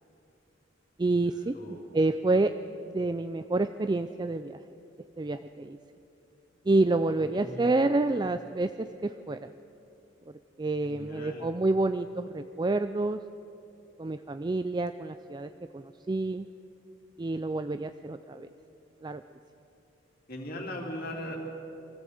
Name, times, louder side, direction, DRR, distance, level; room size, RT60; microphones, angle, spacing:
voice 1, 1.0-2.5 2.8-4.6 5.2-5.8 6.7-9.5 10.6-13.2 14.0-16.5 17.2-18.5 19.0-19.2, right 2 dB, 20° right, 10 dB, 0.4 m, -28 dB
voice 2, 1.5-1.9 7.3-7.9 10.8-11.5 20.3-21.4, left 1 dB, 50° left, 1 dB, 3.1 m, -39 dB
23.5 x 15.0 x 7.9 m, 2.8 s
head